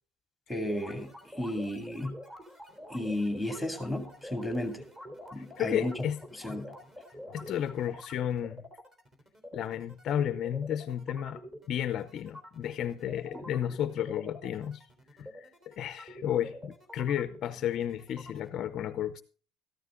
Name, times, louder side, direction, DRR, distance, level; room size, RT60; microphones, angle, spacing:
voice 1, 0.5-2.1 2.9-4.8 5.3-5.9 6.4-6.7 13.3-13.4, left 1 dB, ahead, 2.5 m, -33 dB
sound 1, 0.6-18.5, equal, 20° right, 3.5 m, -47 dB
voice 2, 5.4-6.2 7.3-8.6 9.5-11.4 11.7-14.8 15.2-19.2, left 10 dB, 40° left, 0.7 m, -33 dB
14.0 x 12.5 x 3.8 m
cardioid pair, 160°, 0 cm